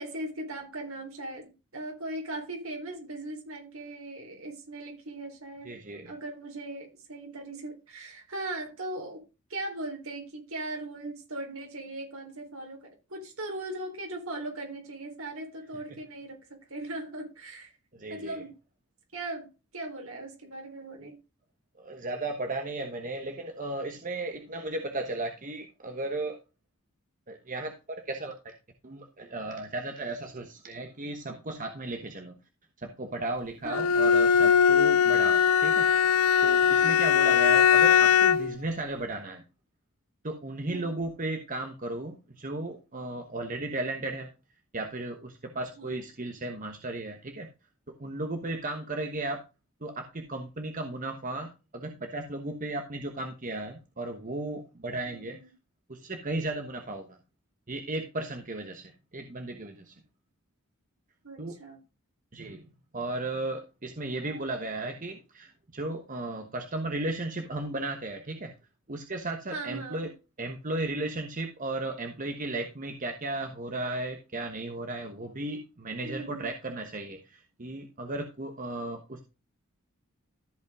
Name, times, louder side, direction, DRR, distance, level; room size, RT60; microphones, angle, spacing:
voice 1, 0.0-5.7 6.1-9.2 9.5-17.7 18.1-18.5 19.1-21.2 33.6-33.9 36.8-37.1 40.7-41.0 45.8-45.9 55.1-55.5 61.2-61.8 64.2-64.4 69.5-70.1 76.0-76.5, right 2 dB, 70° right, 2 dB, 3.9 m, -39 dB
voice 2, 5.6-6.1 17.9-18.4 21.8-26.4 27.3-27.7 28.1-28.5 28.8-32.3 32.8-35.9 36.4-39.4 40.2-44.3 44.7-47.5 47.9-49.4 49.8-55.4 55.9-57.2 57.7-59.9 61.4-61.6 62.3-62.6 62.9-68.5 68.9-70.1 70.4-79.2, right 2 dB, 40° right, 4 dB, 1.2 m, -35 dB
Bowed string instrument, 33.7-38.6, left 7 dB, 75° left, 0.6 m, -21 dB
14.0 x 5.4 x 3.6 m, 0.28 s
head